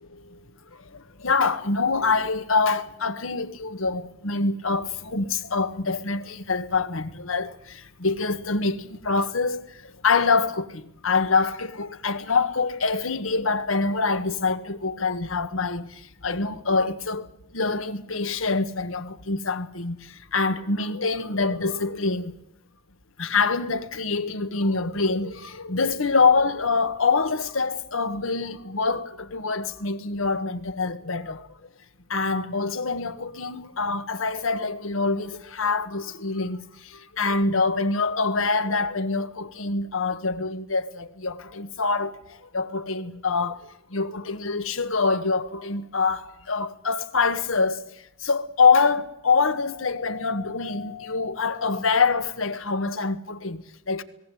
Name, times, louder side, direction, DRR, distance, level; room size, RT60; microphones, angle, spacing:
voice 1, 0.1-22.4 23.2-31.5 32.1-54.0, left 4 dB, 70° left, 1.5 m, -25 dB
19.0 x 18.0 x 9.2 m
head